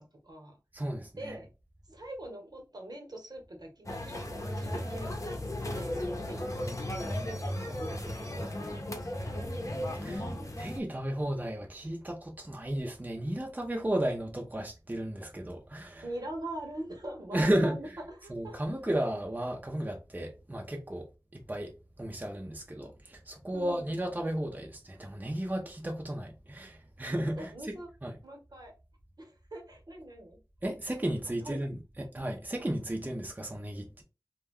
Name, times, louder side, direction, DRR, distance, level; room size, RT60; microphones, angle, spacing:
voice 1, 0.0-0.6 1.2-1.5 1.9-9.5 10.0-10.6 16.0-17.9 18.2-18.7 23.5-24.0 27.4-27.9 28.2-28.7 29.2-30.4 31.4-31.6, right 1 dB, 65° right, 1.0 m, -43 dB
voice 2, 0.7-1.4 10.0-10.2 10.6-16.0 17.3-17.7 18.3-21.1 21.3-21.7 22.0-28.1 30.6-34.0, right 1 dB, 25° right, 0.5 m, -34 dB
sound 1, 3.8-10.8, left 1 dB, 45° left, 0.7 m, -35 dB
2.2 x 2.2 x 3.5 m
wide cardioid pair, 40°, 7 cm